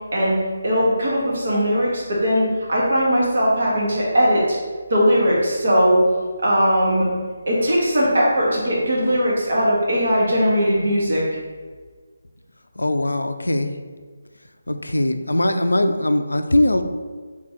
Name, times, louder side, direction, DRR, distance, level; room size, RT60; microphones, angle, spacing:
voice 1, 0.6-4.6 4.9-6.0 6.4-7.1 7.5-11.2, equal, 60° right, -5 dB, 1.5 m, -19 dB
voice 2, 12.8-13.7 14.7-16.8, left 1 dB, 80° left, 8 dB, 0.3 m, -20 dB
3.8 x 3.0 x 4.0 m, 1.5 s
figure-of-eight pair, 150°, 0 cm